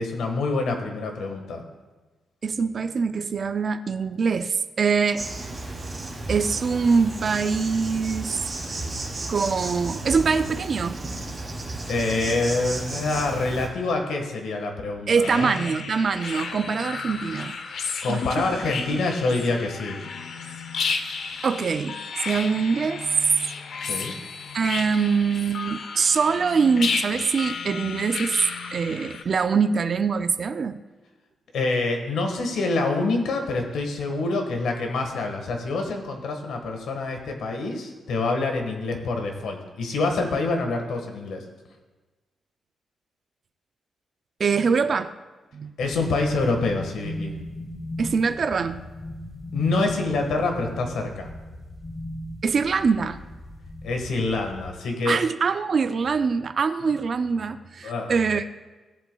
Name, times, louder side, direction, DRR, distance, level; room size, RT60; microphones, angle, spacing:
voice 1, 0.0-1.6 11.9-15.5 18.0-20.0 23.8-24.2 31.5-41.4 45.8-47.3 49.5-51.3 53.8-55.2 57.8-58.1, left 3 dB, 90° left, 3 dB, 1.4 m, -26 dB
voice 2, 2.4-5.3 6.3-8.4 9.3-11.0 15.1-17.6 18.1-18.2 18.9-19.0 21.4-22.0 22.2-23.1 24.5-28.4 28.7-30.8 44.4-45.1 45.5-45.7 48.0-48.8 52.4-53.2 55.1-58.5, right 5 dB, 40° right, 10 dB, 0.3 m, -23 dB
Insect, 5.2-13.7, right 2 dB, 20° right, 2.3 m, -33 dB
sound 1, 15.2-29.2, left 5 dB, 60° left, 0.6 m, -33 dB
sound 2, 45.8-54.7, equal, 25° left, 1.1 m, -37 dB
15.5 x 7.9 x 2.3 m, 1.2 s
wide cardioid pair, 170°, 0 cm